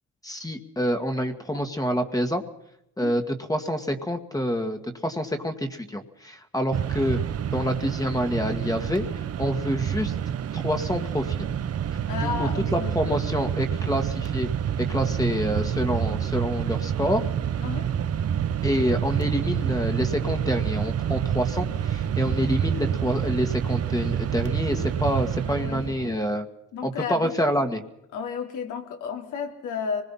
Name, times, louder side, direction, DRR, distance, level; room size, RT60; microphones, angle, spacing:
voice 1, 0.2-2.4 3.0-7.2 7.5-10.1 10.5-11.5 12.2-14.5 14.8-17.2 18.6-26.4 26.8-27.8, equal, 10° left, 6 dB, 1.9 m, -27 dB
Mechanisms, 6.7-26.2, right 9 dB, 55° right, 1.0 m, -28 dB
voice 2, 12.1-13.3 17.6-17.9 25.4-26.4 26.7-27.6 28.1-30.0, left 6 dB, 85° left, 3 dB, 3.7 m, -33 dB
25.0 x 20.5 x 5.7 m, 0.79 s
cardioid pair, 90°, 30 cm